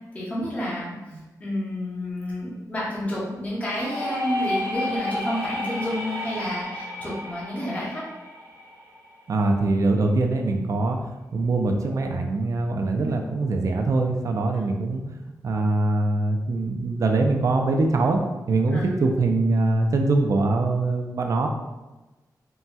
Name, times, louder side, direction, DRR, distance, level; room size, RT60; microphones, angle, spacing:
voice 1, 0.1-8.0 13.0-13.2 18.7-18.9, equal, 20° left, -7 dB, 0.7 m, -30 dB
sound 1, 3.7-9.4, left 1 dB, 75° right, 1.2 m, -31 dB
voice 2, 9.3-11.0 11.3-15.1 15.4-18.2 18.5-21.5, right 2 dB, 55° right, 3 dB, 0.4 m, -23 dB
4.0 x 2.2 x 2.2 m, 1.1 s
wide cardioid pair, 155°, 7 cm